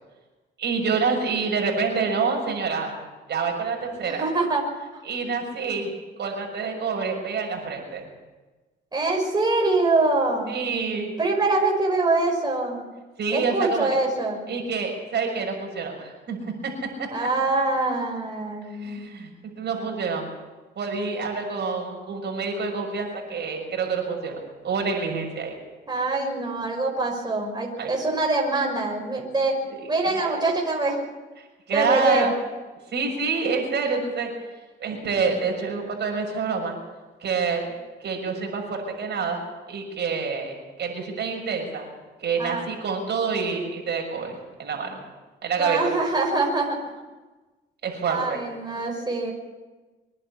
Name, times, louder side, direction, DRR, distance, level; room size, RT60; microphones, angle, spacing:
voice 1, 0.6-3.0 3.3-4.2 5.1-5.9 6.2-8.1 10.5-11.1 13.2-13.9 14.5-16.7 18.8-20.3 20.8-25.6 27.8-27.9 29.7-30.4 31.7-32.3 32.9-34.3 34.8-36.8 37.2-37.7 38.0-39.4 39.7-41.9 42.2-45.0 45.4-45.8 47.8-48.4, right 5 dB, 60° right, 1 dB, 6.7 m, -27 dB
voice 2, 4.0-4.6 4.9-5.0 8.9-10.5 11.2-12.8 13.3-14.4 17.1-19.1 25.9-29.6 29.9-31.0 31.7-32.3 42.4-42.6 45.5-46.8 48.0-49.3, right 2 dB, 20° right, 0 dB, 6.0 m, -24 dB
25.0 x 11.0 x 10.0 m, 1.2 s
cardioid pair, 90°, 20 cm